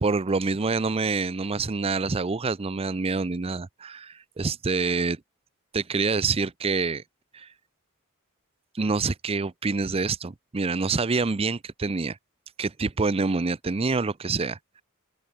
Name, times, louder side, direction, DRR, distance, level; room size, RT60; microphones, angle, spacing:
voice 1, 0.0-5.2 5.7-7.0 7.3-7.5 8.8-12.2 12.6-14.6, right 4 dB, 25° right, 0.5 m, -26 dB
open air
head